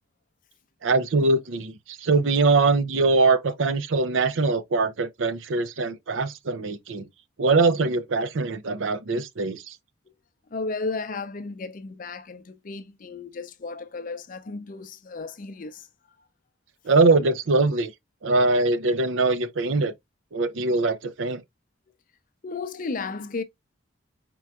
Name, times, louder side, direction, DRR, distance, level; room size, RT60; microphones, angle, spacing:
voice 1, 0.8-7.1 7.4-9.8 16.8-17.9 18.2-19.9 20.3-21.4, right 3 dB, 75° right, 0.5 m, -22 dB
voice 2, 10.5-15.9 22.4-23.4, left 3 dB, 45° left, 0.5 m, -34 dB
4.3 x 3.7 x 2.3 m
head